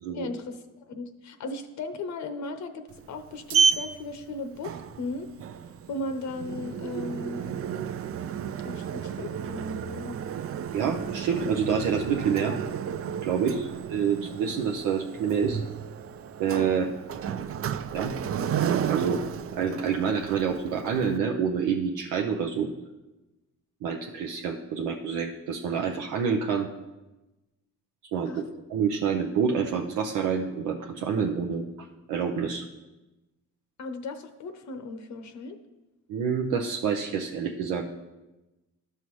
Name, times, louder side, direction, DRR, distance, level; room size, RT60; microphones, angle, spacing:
voice 1, 0.1-5.3 5.7-7.5 8.6-10.2 13.4-13.6 28.3-28.4 33.8-35.6, left 2 dB, 65° left, 8 dB, 0.8 m, -37 dB
Sliding door, 2.9-21.2, right 7 dB, 50° right, 0.5 m, -32 dB
voice 2, 10.7-12.6 13.2-15.6 16.4-16.9 17.9-18.1 18.9-19.2 19.5-22.7 23.8-26.7 28.1-28.3 28.7-32.6 36.1-37.8, right 6 dB, 90° right, 1 dB, 0.7 m, -27 dB
12.5 x 5.6 x 3.1 m, 1.0 s
cardioid pair, 90°, 30 cm